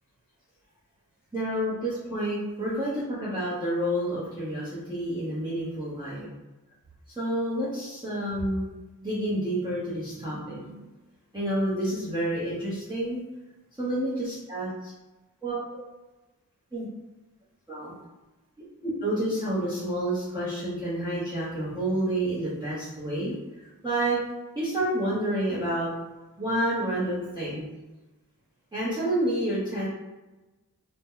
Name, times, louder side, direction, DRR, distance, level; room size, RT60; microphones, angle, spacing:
voice 1, 1.3-6.3 7.2-8.6 9.0-10.7 11.3-13.2 13.8-14.9 15.4-15.8 16.7-16.9 17.7-17.9 18.8-23.3 23.8-24.2 24.5-25.9 26.4-27.7 28.7-29.9, right 1 dB, 10° right, -11 dB, 1.0 m, -29 dB
2.9 x 2.2 x 3.6 m, 1.1 s
wide cardioid pair, 70°, 35 cm